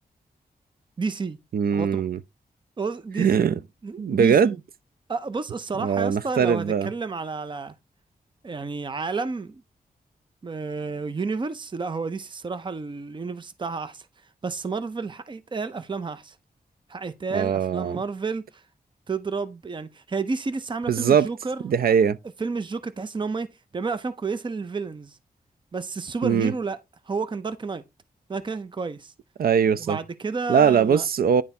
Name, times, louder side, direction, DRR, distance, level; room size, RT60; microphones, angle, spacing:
voice 1, 1.0-1.4 1.7-2.0 2.8-3.3 3.8-4.6 5.1-7.7 8.4-9.6 10.4-14.1 14.4-16.4 16.9-18.6 19.1-21.9 22.4-23.5 23.7-25.2 25.7-26.8 27.1-27.8 28.3-29.1 29.8-31.1, right 4 dB, 30° right, 0.6 m, -30 dB
voice 2, 1.5-2.2 3.2-3.6 4.0-4.6 5.8-6.9 17.3-18.0 20.9-21.3 21.6-22.2 26.2-26.5 29.4-30.0 30.5-31.4, right 7 dB, 70° right, 0.5 m, -21 dB
9.7 x 3.4 x 4.2 m
wide cardioid pair, 120°, 16 cm